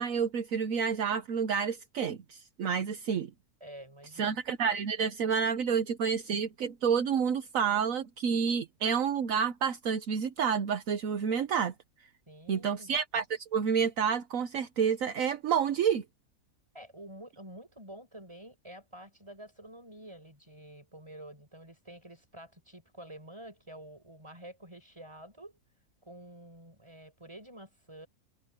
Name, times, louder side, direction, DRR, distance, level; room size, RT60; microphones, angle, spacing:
voice 1, 0.0-3.3 4.2-11.7 12.5-16.0, right 7 dB, 65° right, 1.3 m, -29 dB
voice 2, 3.6-4.4 12.3-13.0 16.7-25.5 26.0-28.1, right 1 dB, 20° right, 6.2 m, -49 dB
omnidirectional pair, 1.5 m